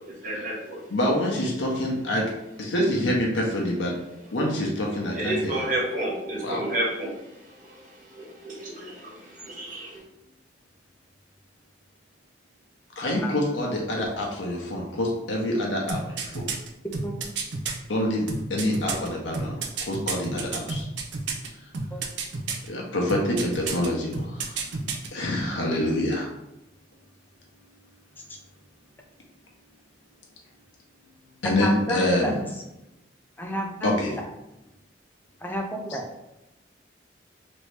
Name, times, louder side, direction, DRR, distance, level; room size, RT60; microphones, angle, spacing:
voice 1, 0.2-0.8 5.1-7.2 7.6-7.7 8.1-10.0, right 1 dB, 45° right, -4 dB, 1.0 m, -30 dB
voice 2, 0.9-2.2 2.6-3.9 4.3-5.6 6.4-6.6 13.0-16.4 17.9-18.2 18.5-19.5 19.8-20.8 22.7-24.2 25.1-26.3 31.4-32.4 33.8-34.1, left 1 dB, 90° left, -1 dB, 0.7 m, -26 dB
sound 1, 15.9-17.7 18.3-21.5 21.7-22.7 23.1-23.9 24.1-25.1 25.4-25.5, right 4 dB, 75° right, 0.5 m, -30 dB
voice 3, 31.4-32.3 33.4-33.9 35.4-36.0, equal, 10° left, 1 dB, 0.4 m, -30 dB
3.0 x 2.6 x 3.3 m, 0.90 s
head